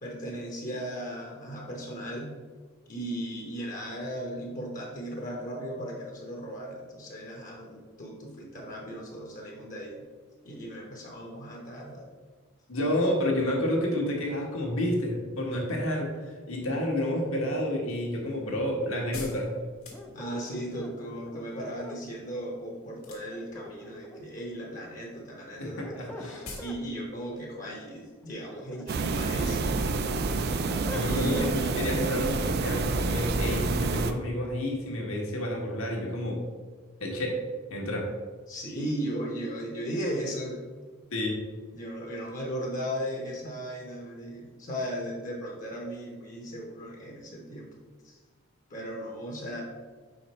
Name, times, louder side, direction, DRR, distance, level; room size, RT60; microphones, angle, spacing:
voice 1, 0.0-2.3 2.9-10.1 10.4-12.1 20.1-30.2 31.0-31.5 38.5-40.7 41.7-47.7 48.0-48.2 48.7-49.6, equal, 35° left, -1 dB, 0.9 m, -37 dB
voice 2, 12.7-19.5 25.6-26.5 30.8-36.4 37.0-37.4 37.7-38.1 41.1-41.4, left 1 dB, 70° left, -1 dB, 1.5 m, -30 dB
sound 1, 18.4-20.6 23.0-23.6 23.9-24.5 24.7-24.9 25.2-25.3 25.5-25.6 25.9-26.0 26.4-26.8 27.1-27.2, left 3 dB, 90° left, 1.7 m, -44 dB
sound 2, 19.9-22.0 23.3-24.4 25.6-26.8 28.2-29.4 29.8-31.6, equal, 10° left, 0.5 m, -43 dB
sound 3, 28.9-34.1, right 3 dB, 45° right, 0.4 m, -28 dB
5.2 x 5.0 x 4.3 m, 1.4 s
head